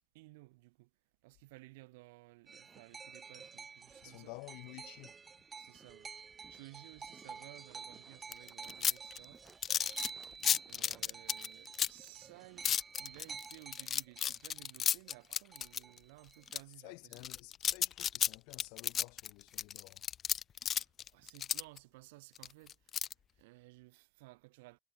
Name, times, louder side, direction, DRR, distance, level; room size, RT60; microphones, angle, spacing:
voice 1, 0.1-0.9 1.2-4.3 5.6-6.1 6.5-9.4 10.6-17.2 20.7-23.1 23.3-24.8, right 23 dB, 85° right, 3.2 m, -57 dB
sound 1, 2.5-15.2 15.5-16.5, right 5 dB, 40° right, 0.8 m, -50 dB
voice 2, 4.0-5.1 16.8-20.0, left 32 dB, 80° left, 3.8 m, -52 dB
sound 2, 8.3-12.1 12.6-16.0 16.5-16.6 17.1-21.8 22.4-23.1, left 9 dB, 60° left, 0.8 m, -33 dB
hypercardioid pair, 50°, 0 cm